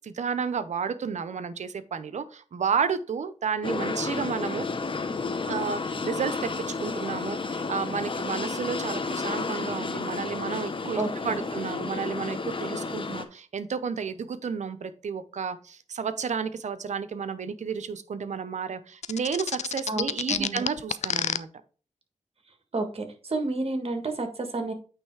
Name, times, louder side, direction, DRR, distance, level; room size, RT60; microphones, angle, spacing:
voice 1, 0.0-4.7 5.5-21.5, right 6 dB, 65° right, 12 dB, 0.6 m, -31 dB
sound 1, 3.6-13.2, left 4 dB, 40° left, 0.9 m, -31 dB
voice 2, 10.9-11.5 19.9-20.6 22.7-24.7, right 2 dB, 50° right, 5 dB, 1.7 m, -31 dB
sound 2, 19.0-21.4, left 8 dB, 65° left, 0.4 m, -28 dB
9.0 x 3.1 x 4.7 m, 0.38 s
cardioid pair, 55°, 13 cm